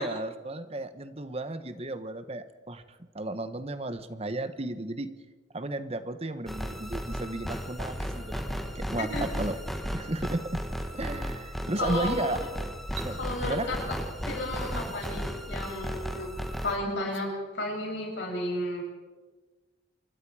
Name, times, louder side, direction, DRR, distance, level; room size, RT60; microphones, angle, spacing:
voice 1, 0.0-2.8 3.1-5.1 5.5-8.5 8.7-9.6 9.9-10.6 10.9-12.4 13.0-13.7 14.7-14.9, right 2 dB, 35° right, 10 dB, 1.2 m, -34 dB
sound 1, 6.5-16.8, equal, ahead, 1.8 m, -35 dB
voice 2, 11.8-12.4 13.2-14.0 14.3-16.3 16.6-18.8, left 1 dB, 70° left, -1 dB, 7.6 m, -33 dB
sound 2, 12.9-13.1 14.9-15.1 17.0-17.2, right 12 dB, 70° right, 2.4 m, -44 dB
27.0 x 22.0 x 5.0 m, 1.3 s
head